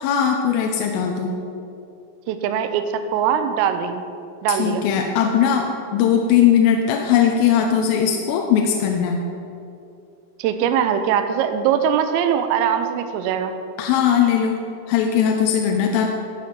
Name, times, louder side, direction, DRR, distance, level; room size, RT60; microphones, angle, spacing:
voice 1, 0.0-1.3 4.5-9.2 13.8-14.6 14.9-16.1, left 8 dB, 85° left, 2 dB, 3.3 m, -19 dB
voice 2, 2.3-4.0 4.4-4.9 10.4-13.6, right 8 dB, 85° right, 8 dB, 3.3 m, -21 dB
13.5 x 6.6 x 5.3 m, 2.6 s
omnidirectional pair, 5.8 m